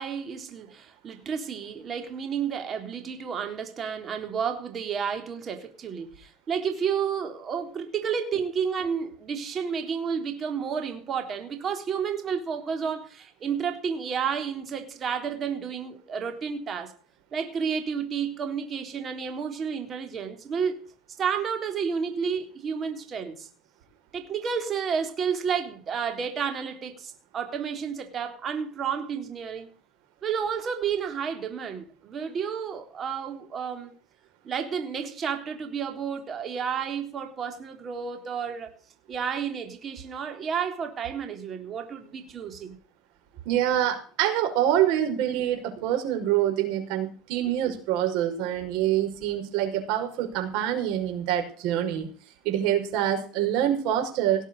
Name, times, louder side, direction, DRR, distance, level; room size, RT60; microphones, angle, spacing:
voice 1, 0.0-16.9 17.3-20.9 21.2-23.5 24.1-29.7 30.2-33.9 34.4-38.7 39.1-42.8, right 7 dB, 30° right, 3.7 m, -31 dB
voice 2, 43.5-52.1 52.4-54.5, right 11 dB, 70° right, 5.7 m, -26 dB
18.5 x 7.4 x 6.7 m
cardioid pair, 135°, 0 cm